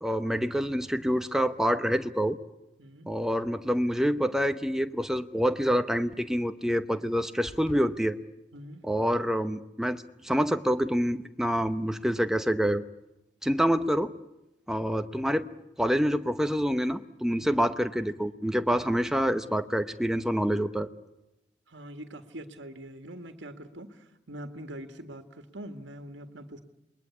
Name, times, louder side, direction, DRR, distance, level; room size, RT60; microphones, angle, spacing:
voice 1, 0.0-2.4 3.1-8.2 8.8-12.8 13.4-14.1 14.7-15.5 15.8-20.9, equal, 5° right, 8 dB, 0.9 m, -27 dB
voice 2, 2.8-3.2 8.5-8.9 17.4-17.5 21.7-26.6, right 1 dB, 75° right, 7 dB, 1.9 m, -43 dB
sound 1, 7.5-7.9, left 1 dB, 35° left, 2.0 m, -44 dB
27.5 x 21.5 x 8.3 m, 0.92 s
head